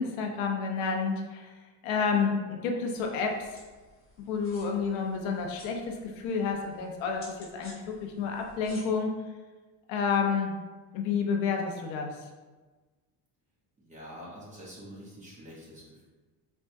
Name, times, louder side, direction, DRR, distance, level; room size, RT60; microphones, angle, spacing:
voice 1, 0.0-1.5 1.8-3.5 4.2-9.1 9.9-10.5 10.9-12.2, left 5 dB, 85° left, 2 dB, 0.7 m, -30 dB
sound 1, 2.9-8.8, left 2 dB, 30° left, 0.8 m, -54 dB
voice 2, 13.8-16.1, equal, 15° right, -7 dB, 0.6 m, -46 dB
4.4 x 2.2 x 2.6 m, 1.3 s
cardioid pair, 180°, 45 cm